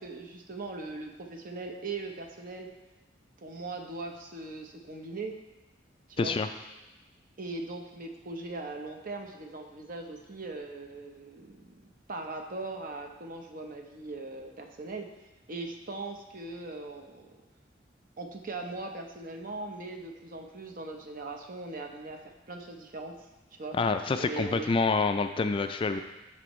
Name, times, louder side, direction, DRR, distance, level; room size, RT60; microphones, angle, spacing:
voice 1, 0.0-2.7 3.4-5.4 6.1-6.4 7.4-15.1 15.5-17.3 18.2-22.2 22.5-23.1 23.5-23.8 24.1-24.7, right 3 dB, 50° right, 3 dB, 0.8 m, -40 dB
voice 2, 6.2-6.5 23.8-26.0, left 4 dB, 30° left, 8 dB, 0.3 m, -27 dB
12.5 x 4.4 x 3.1 m, 1.0 s
head